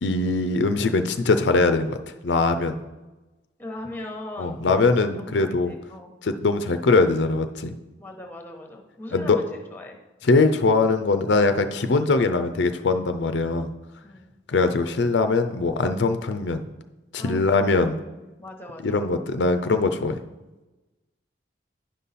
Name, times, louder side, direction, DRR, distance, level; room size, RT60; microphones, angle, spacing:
voice 1, 0.0-2.0 2.2-2.8 4.4-5.7 6.2-7.8 9.1-9.4 10.3-13.7 14.5-16.6 17.1-18.0 18.8-20.2, left 3 dB, 75° left, 9 dB, 0.5 m, -21 dB
voice 2, 3.6-4.9 5.1-6.1 8.0-10.0 14.0-14.3 17.2-19.0, left 1 dB, 10° left, 4 dB, 1.0 m, -39 dB
10.0 x 5.5 x 4.1 m, 1.1 s
head